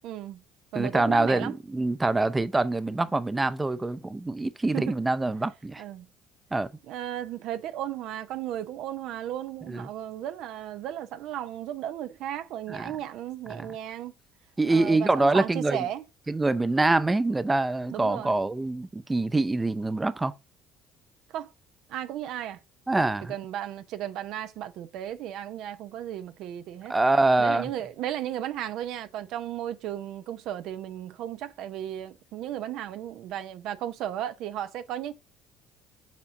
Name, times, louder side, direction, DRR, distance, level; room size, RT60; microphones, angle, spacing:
voice 1, 0.0-0.4 0.7-1.6 4.7-4.9 5.8-6.1 6.9-14.1 14.7-16.0 17.9-18.3 21.3-21.5 21.9-22.6 23.3-26.9 27.4-35.1, right 11 dB, 70° right, 0.5 m, -35 dB
voice 2, 0.7-5.8 6.5-6.7 9.7-9.9 12.7-12.9 13.5-13.7 14.6-15.8 16.3-20.3 22.9-23.3 26.9-27.7, right 2 dB, 15° right, 0.5 m, -25 dB
7.4 x 4.3 x 3.6 m
supercardioid pair, 80°, 0 cm